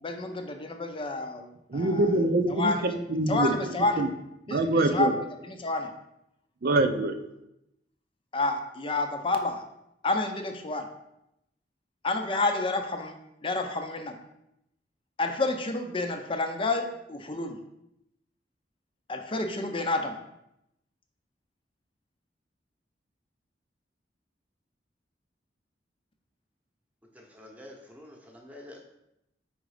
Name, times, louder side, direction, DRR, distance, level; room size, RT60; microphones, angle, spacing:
voice 1, 0.0-1.5 1.7-2.1 2.5-2.8 3.3-4.0 4.5-5.1 5.5-5.9 8.3-9.6 10.0-10.9 12.0-13.1 13.4-14.2 15.2-17.6 19.1-20.2, left 2 dB, 30° left, 5 dB, 0.6 m, -29 dB
voice 2, 1.7-3.5 4.0-4.1 4.5-5.1 6.6-7.1, right 2 dB, 60° right, 8 dB, 0.6 m, -24 dB
voice 3, 27.1-28.8, left 1 dB, 10° right, 0 dB, 1.0 m, -48 dB
5.1 x 3.9 x 4.8 m, 0.83 s
head